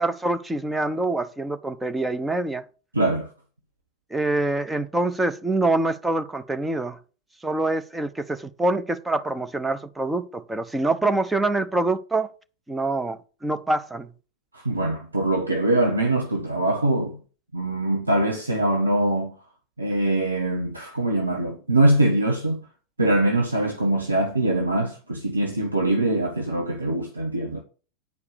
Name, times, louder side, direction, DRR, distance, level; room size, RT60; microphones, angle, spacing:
voice 1, 0.0-2.6 4.1-7.0 7.4-12.3 12.7-14.1, right 2 dB, 5° right, 0.7 m, -25 dB
voice 2, 2.9-3.3 14.5-17.2 17.5-19.3 19.8-22.6 23.0-27.6, right 1 dB, 80° right, 1.4 m, -23 dB
9.4 x 4.8 x 6.7 m
figure-of-eight pair, 90°, 0 cm